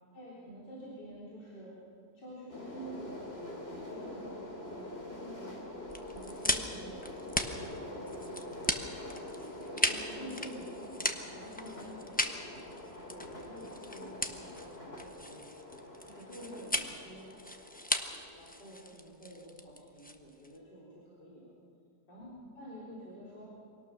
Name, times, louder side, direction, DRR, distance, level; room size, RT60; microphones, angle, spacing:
voice 1, 0.1-1.8 2.1-5.7 6.1-8.9 9.8-12.5 13.1-15.5 16.0-17.3 18.3-21.5 22.1-23.5, equal, 80° left, -7 dB, 4.4 m, -49 dB
sound 1, 2.5-18.9, left 1 dB, 35° left, 3.2 m, -45 dB
sound 2, 5.9-20.6, left 1 dB, 5° left, 0.8 m, -37 dB
24.0 x 18.5 x 6.8 m, 2.4 s
omnidirectional pair, 1.8 m